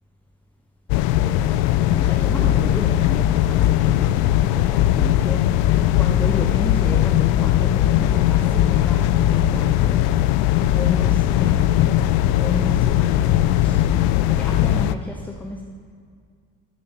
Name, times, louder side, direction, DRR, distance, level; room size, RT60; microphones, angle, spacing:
sound 1, 0.9-14.9, left 12 dB, 50° left, 0.6 m, -19 dB
voice 1, 1.2-10.1 10.5-14.0 14.3-15.6, left 1 dB, 5° left, 1 dB, 1.0 m, -33 dB
13.5 x 10.0 x 5.9 m, 2.1 s
figure-of-eight pair, 60°, 46 cm